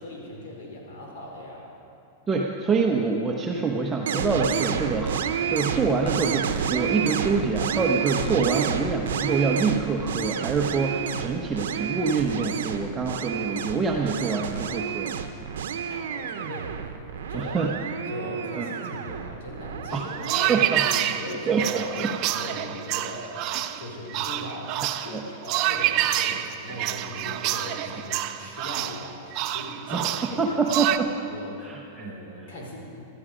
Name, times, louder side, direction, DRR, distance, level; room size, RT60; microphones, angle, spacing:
voice 1, 0.0-1.7 8.5-8.7 15.8-16.9 17.3-17.6 17.9-20.6 21.0-30.6 31.3-31.7 32.0-32.8, left 1 dB, 75° left, -1 dB, 4.1 m, -39 dB
voice 2, 2.3-15.1 17.3-17.7 18.6-18.7 19.9-20.0 20.3-20.8 21.5-22.1 25.1-25.2 29.9-30.1 30.4-31.1 31.6-32.1, right 4 dB, 15° right, -1 dB, 0.9 m, -26 dB
sound 1, 4.1-21.0, right 7 dB, 85° right, 0.8 m, -30 dB
sound 2, 19.9-31.0, right 13 dB, 45° right, 0.6 m, -28 dB
15.0 x 12.5 x 5.1 m, 2.6 s
hypercardioid pair, 135°, 0 cm